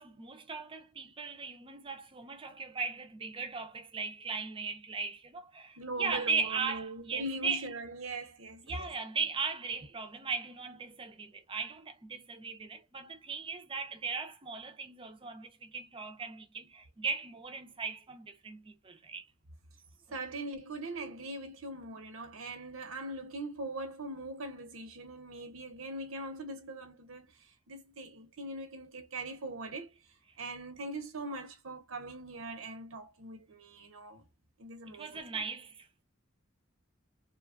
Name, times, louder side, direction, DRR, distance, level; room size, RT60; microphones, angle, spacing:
voice 1, 0.0-7.7 8.6-19.3 34.9-36.0, right 5 dB, 25° right, 0.5 m, -38 dB
voice 2, 5.8-9.0 20.1-29.9 30.4-34.2 34.6-35.4, right 2 dB, 80° right, 0.9 m, -41 dB
2.9 x 2.3 x 2.3 m
head